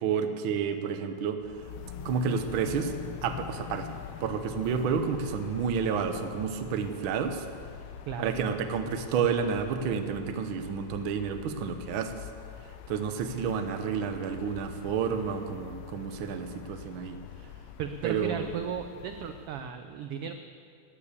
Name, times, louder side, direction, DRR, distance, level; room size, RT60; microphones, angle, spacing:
voice 1, 0.0-1.5 2.0-2.9 3.2-3.9 4.2-7.5 8.2-12.3 12.9-17.2 18.0-18.5, right 6 dB, 70° right, 7 dB, 1.3 m, -30 dB
sound 1, 1.4-19.7, left 9 dB, 80° left, 1.7 m, -45 dB
voice 2, 8.1-8.6 17.8-20.3, right 8 dB, 85° right, 7 dB, 1.3 m, -35 dB
13.5 x 9.6 x 8.3 m, 2.3 s
omnidirectional pair, 3.3 m